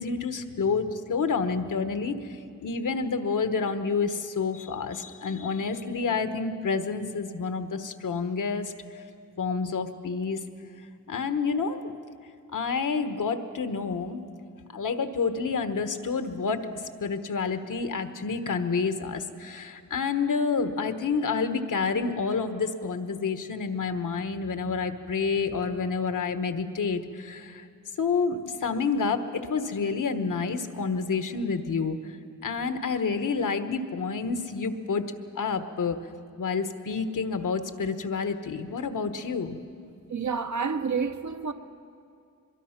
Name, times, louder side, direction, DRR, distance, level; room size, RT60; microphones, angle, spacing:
voice 1, 0.0-9.0 9.4-10.4 10.8-11.9 12.5-14.2 14.7-27.7 28.0-32.2 32.4-36.0 36.4-39.6, left 5 dB, 75° left, 1.2 m, -29 dB
voice 2, 40.1-41.5, right 5 dB, 65° right, 1.0 m, -29 dB
23.5 x 22.0 x 5.8 m
wide cardioid pair, 95°, 31 cm